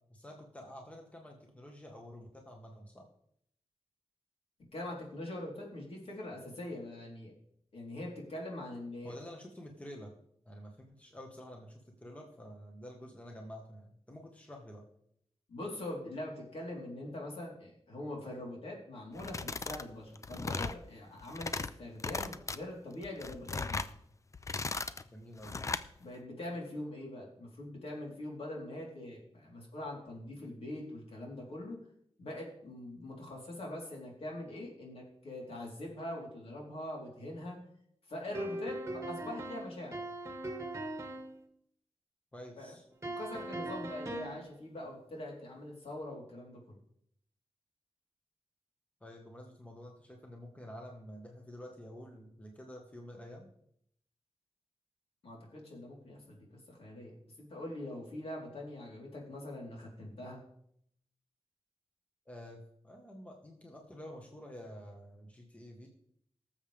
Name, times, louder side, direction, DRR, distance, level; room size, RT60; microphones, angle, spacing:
voice 1, 0.1-3.0 9.0-10.1 10.4-14.8 25.1-25.5 42.3-42.8 49.0-53.5 62.3-65.9, equal, 10° left, 1 dB, 1.5 m, -49 dB
voice 2, 4.7-7.3 7.7-9.1 15.5-23.8 26.0-31.8 32.2-37.6 38.1-40.0 42.6-42.7 43.0-46.8 55.2-60.4, left 1 dB, 65° left, -2 dB, 3.9 m, -43 dB
sound 1, 19.2-19.9 20.2-20.8 21.2-21.7 22.0-22.6 23.0-23.9 24.3-25.0 25.4-25.9, left 3 dB, 30° left, 0.5 m, -37 dB
sound 2, 38.3-41.3 43.0-44.5, right 1 dB, 25° right, 1.6 m, -40 dB
18.5 x 7.3 x 3.5 m, 0.70 s
wide cardioid pair, 135°, 11 cm